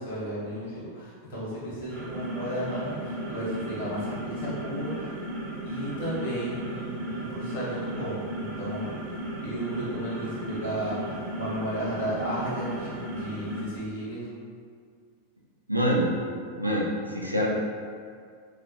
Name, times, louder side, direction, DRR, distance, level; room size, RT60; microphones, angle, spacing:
voice 1, 0.0-5.1 5.6-9.1 9.4-14.3, right 1 dB, 55° left, -8 dB, 0.8 m, -34 dB
sound 1, 1.8-13.8, right 1 dB, 55° right, 0.7 m, -35 dB
voice 2, 15.7-16.1 16.6-17.5, equal, 90° right, -3 dB, 0.3 m, -25 dB
2.4 x 2.0 x 2.7 m, 2.1 s
figure-of-eight pair, 90°, 0 cm